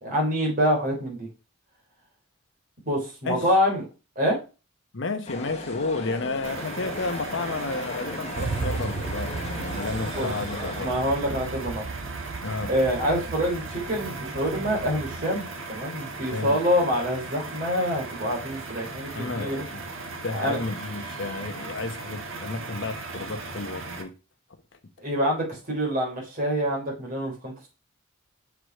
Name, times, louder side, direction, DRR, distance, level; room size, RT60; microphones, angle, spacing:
voice 1, 0.0-1.3 2.9-3.9 4.2-4.4 10.1-10.3 10.6-11.8 12.7-19.6 20.3-20.6 25.0-27.7, equal, 45° right, 3.7 m, -26 dB
voice 2, 4.9-10.9 12.4-12.7 16.3-16.6 19.1-19.8 20.2-24.1, left 3 dB, 65° left, 1.0 m, -32 dB
sound 1, 5.3-10.8, left 2 dB, 30° left, 1.3 m, -37 dB
sound 2, 6.4-24.0, right 3 dB, 80° right, 1.5 m, -37 dB
sound 3, 8.4-15.3, right 4 dB, 65° right, 0.6 m, -35 dB
6.4 x 4.8 x 4.6 m
head